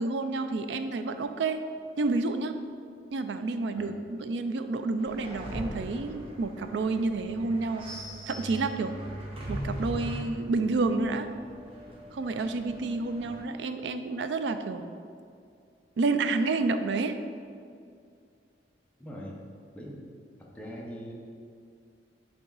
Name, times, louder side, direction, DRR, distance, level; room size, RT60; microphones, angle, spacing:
voice 1, 0.0-1.6 2.0-2.5 3.1-7.9 8.3-8.9 9.5-11.3 12.1-14.9 16.0-17.2, right 3 dB, 70° right, 9 dB, 0.4 m, -29 dB
sound 1, 5.0-13.4, equal, 30° right, 1.1 m, -40 dB
voice 2, 19.0-19.4 19.7-20.0 20.5-21.1, equal, 10° left, -4 dB, 1.0 m, -41 dB
7.6 x 3.6 x 4.0 m, 2.3 s
head